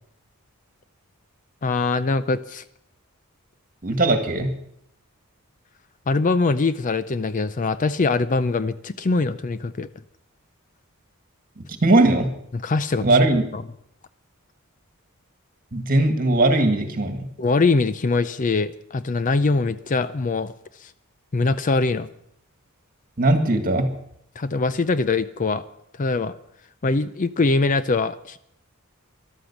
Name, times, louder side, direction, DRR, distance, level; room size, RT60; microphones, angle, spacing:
voice 1, 1.6-2.6 6.1-9.9 12.5-13.1 13.5-13.6 17.4-20.5 20.8-20.9 21.3-22.1 24.4-25.6 26.0-26.3 26.8-28.4, left 3 dB, 35° left, 14 dB, 0.5 m, -22 dB
voice 2, 3.8-4.5 11.6-12.3 13.0-13.4 15.7-17.3 23.2-23.9, right 2 dB, 40° right, 7 dB, 1.8 m, -19 dB
13.0 x 12.0 x 7.2 m, 0.72 s
head